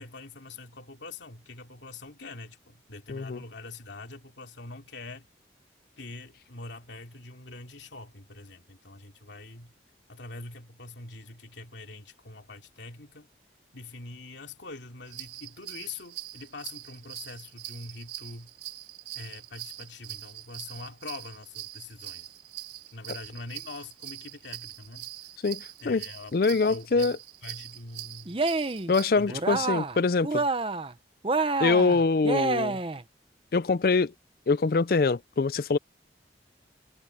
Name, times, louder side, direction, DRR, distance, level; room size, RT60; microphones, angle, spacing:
voice 1, 0.0-5.2 6.0-9.7 10.1-13.3 13.7-18.5 19.1-22.3 22.9-25.1 25.8-27.2 27.4-28.4 29.2-29.6, left 3 dB, 85° left, 2.9 m, -44 dB
voice 2, 3.1-3.4 25.4-26.0 26.3-27.2 28.9-30.5 31.6-32.8 33.5-34.1 34.5-35.8, left 4 dB, 55° left, 0.4 m, -24 dB
sound 1, 15.1-29.1, right 14 dB, 75° right, 3.9 m, -43 dB
Cheering, 28.3-28.9 29.3-30.0 30.2-30.9 31.2-33.0, right 3 dB, 30° right, 0.7 m, -28 dB
head